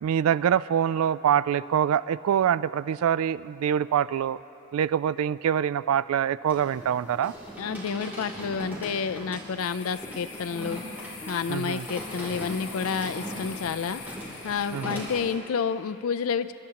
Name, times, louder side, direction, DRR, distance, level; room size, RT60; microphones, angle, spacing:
voice 1, 0.0-4.4 4.7-7.3 11.5-11.8 14.7-15.0, right 9 dB, 80° right, 16 dB, 0.3 m, -25 dB
sound 1, 6.5-15.4, equal, 10° right, 3.0 m, -39 dB
voice 2, 7.6-10.8 11.3-14.0 14.4-16.5, left 6 dB, 80° left, 13 dB, 0.4 m, -29 dB
sound 2, 9.6-15.3, left 5 dB, 55° left, 1.2 m, -44 dB
28.5 x 12.0 x 2.9 m, 2.9 s
head